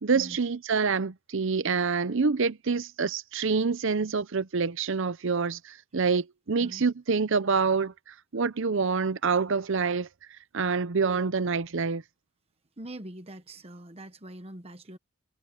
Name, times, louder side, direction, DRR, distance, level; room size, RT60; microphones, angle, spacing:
voice 1, 0.0-7.9 8.3-10.1 10.5-12.0, right 5 dB, 60° right, 0.7 m, -26 dB
voice 2, 12.8-15.0, right 1 dB, 25° right, 1.1 m, -43 dB
head